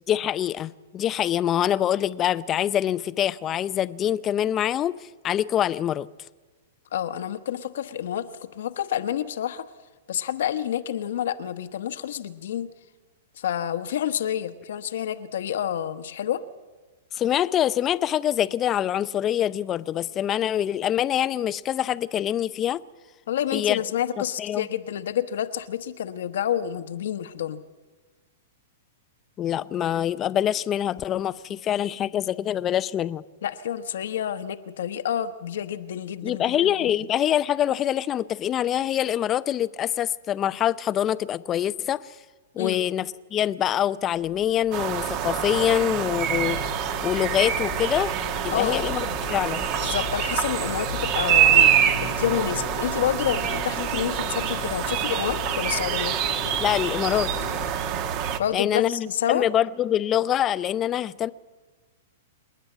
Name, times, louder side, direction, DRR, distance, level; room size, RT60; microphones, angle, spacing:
voice 1, 0.1-4.9 5.2-6.1 17.1-22.8 23.5-23.8 24.4-24.7 29.4-33.2 36.2-42.1 42.6-43.1 43.3-46.6 47.0-48.1 48.4-49.7 56.6-57.3 58.5-61.3, left 11 dB, 25° left, 0.6 m, -25 dB
voice 2, 6.9-9.7 10.1-12.7 13.4-16.4 23.3-27.6 33.4-37.1 42.6-42.9 48.5-48.9 49.8-51.7 52.0-56.2 58.4-59.5, left 10 dB, 70° left, 1.2 m, -29 dB
sound 1, 44.3-57.7, left 11 dB, 50° left, 1.3 m, -38 dB
sound 2, 44.7-58.4, right 9 dB, 40° right, 1.4 m, -25 dB
27.5 x 10.0 x 9.2 m
hypercardioid pair, 140°, 0 cm